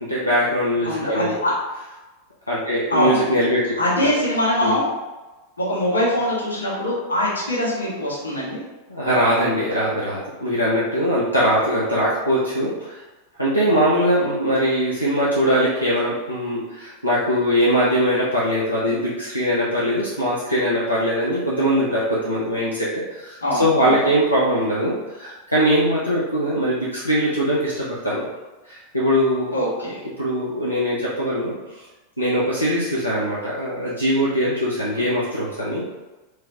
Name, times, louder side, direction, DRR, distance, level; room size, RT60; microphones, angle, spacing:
voice 1, 0.0-1.3 2.5-4.1 4.6-4.8 8.9-13.0 13.4-28.2 28.7-29.6 30.2-31.8 32.2-35.9, equal, 90° left, -7 dB, 0.6 m, -21 dB
voice 2, 0.8-1.5 2.9-3.2 3.8-4.9 5.6-8.6 23.4-24.0 29.5-30.0, left 1 dB, 70° left, -8 dB, 1.5 m, -22 dB
4.7 x 2.2 x 2.9 m, 1.1 s
figure-of-eight pair, 90°, 0 cm